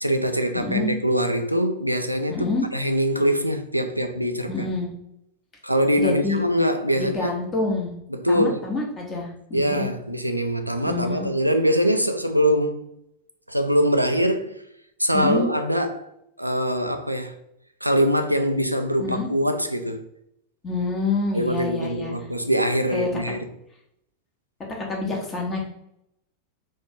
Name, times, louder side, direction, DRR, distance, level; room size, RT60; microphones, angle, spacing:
voice 1, 0.0-2.4 2.7-4.6 5.6-7.3 8.1-8.6 9.5-12.9 13.5-14.6 15.0-16.1 16.4-17.3 17.8-20.1 21.3-23.5, equal, 90° right, 0.3 m, -23 dB
voice 2, 0.5-0.9 2.3-2.7 4.5-4.9 6.0-6.4 7.0-8.0 8.3-9.9 10.8-11.3 15.1-15.4 19.0-19.3 20.6-22.1 22.9-23.1 24.8-25.6, left 3 dB, 20° left, 1.0 m, -27 dB
3.1 x 2.6 x 3.5 m
figure-of-eight pair, 90°, 0 cm